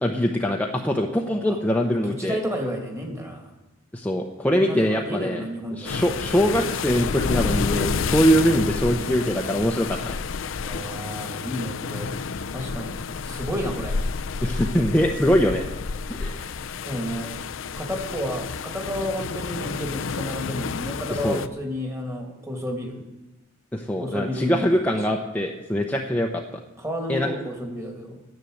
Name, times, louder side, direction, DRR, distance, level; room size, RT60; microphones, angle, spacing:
voice 1, 0.0-2.4 3.9-5.4 5.7-10.2 14.4-15.6 16.1-16.5 21.2-21.4 23.7-26.6 27.1-27.3, equal, 10° left, 1 dB, 0.8 m, -23 dB
voice 2, 1.1-1.6 1.9-3.5 4.5-6.0 10.6-12.1 12.5-14.0 16.9-17.3 17.8-23.0 24.0-25.1 26.8-28.2, equal, 15° right, 3 dB, 2.2 m, -31 dB
sound 1, 5.8-21.5, left 5 dB, 70° left, 0.6 m, -30 dB
11.0 x 10.0 x 7.9 m, 1.1 s
head